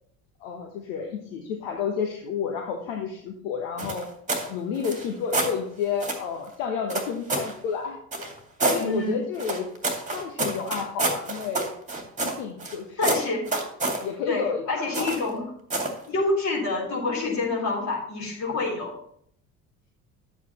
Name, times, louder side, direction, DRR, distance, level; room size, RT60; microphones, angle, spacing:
voice 1, 0.4-4.1 4.4-8.3 8.6-9.7 10.1-11.7 12.2-13.3 14.0-15.1, left 6 dB, 65° left, 3 dB, 1.1 m, -31 dB
sound 1, 3.8-4.5 4.8-5.5 6.0-6.3 6.9-7.5 8.1-8.8 9.4-12.8 13.0-14.0 14.9-15.3 15.7-16.0, right 2 dB, 15° right, 2.1 m, -28 dB
voice 2, 8.8-9.2 13.0-13.5 14.3-15.4 16.1-18.9, left 2 dB, 40° left, -2 dB, 3.7 m, -27 dB
11.0 x 8.3 x 3.0 m, 0.67 s
figure-of-eight pair, 60°, 44 cm